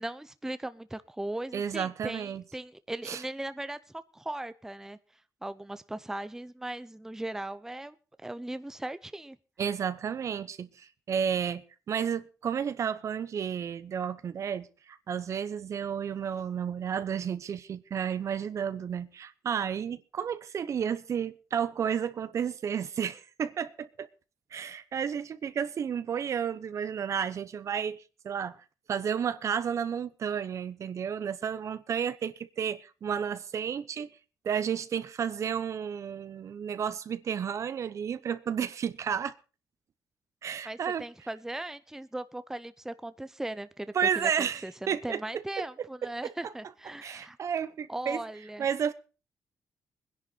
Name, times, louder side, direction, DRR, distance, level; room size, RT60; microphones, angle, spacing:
voice 1, 0.0-5.0 5.4-8.0 8.2-9.4 40.6-47.4 47.9-48.7, right 1 dB, 5° right, 0.7 m, -38 dB
voice 2, 1.5-2.4 3.1-3.2 9.6-11.6 11.9-24.1 24.5-28.6 28.9-34.1 34.4-39.3 40.4-41.0 43.9-45.9 46.2-46.3 47.0-48.2 48.6-48.9, right 7 dB, 55° right, 0.9 m, -32 dB
20.5 x 10.5 x 4.1 m
cardioid pair, 90°, 6 cm